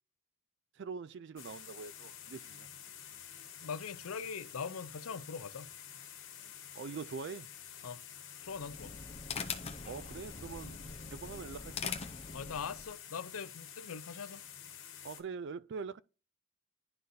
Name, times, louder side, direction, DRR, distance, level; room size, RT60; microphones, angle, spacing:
voice 1, 0.8-2.7 6.7-7.5 9.9-10.8 11.1-12.0 15.0-16.0, right 5 dB, 55° right, 0.3 m, -43 dB
sound 1, 1.4-15.2, left 9 dB, 60° left, 1.4 m, -50 dB
voice 2, 3.6-5.7 7.8-8.0 8.4-8.9 12.3-14.4, left 6 dB, 80° left, 0.5 m, -41 dB
sound 2, 8.5-12.9, left 5 dB, 25° left, 0.6 m, -43 dB
11.0 x 3.9 x 2.7 m
head